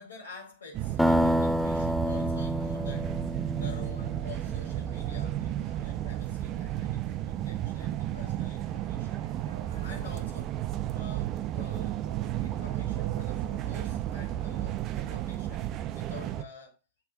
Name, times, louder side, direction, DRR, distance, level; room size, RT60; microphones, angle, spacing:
voice 1, 0.0-3.1 3.6-9.3 9.8-10.6 10.9-12.0 12.4-15.7 15.9-16.8, left 4 dB, 70° left, 1.9 m, -48 dB
sound 1, 0.7-16.4, right 12 dB, 35° right, 0.6 m, -33 dB
sound 2, 1.0-4.8, equal, ahead, 0.3 m, -28 dB
sound 3, 8.6-9.9 12.0-13.7, right 8 dB, 75° right, 2.8 m, -51 dB
8.4 x 3.3 x 4.5 m
figure-of-eight pair, 95°, 0 cm